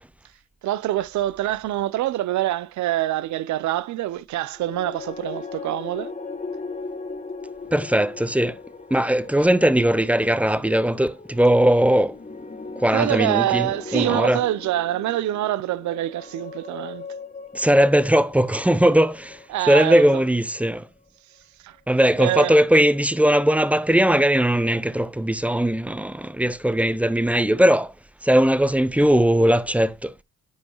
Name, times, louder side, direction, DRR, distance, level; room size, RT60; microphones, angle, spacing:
voice 1, 0.6-6.1 12.9-17.1 19.5-20.2 21.6-21.8 22.2-22.6, right 14 dB, 70° right, 0.6 m, -25 dB
sound 1, 4.6-20.9, left 4 dB, 25° left, 1.4 m, -39 dB
voice 2, 7.7-8.6 8.9-12.2 12.8-14.4 17.5-19.4 19.7-20.9 21.9-27.9 28.2-30.1, right 1 dB, 5° right, 0.5 m, -19 dB
9.6 x 5.4 x 3.0 m
cardioid pair, 90°, 30 cm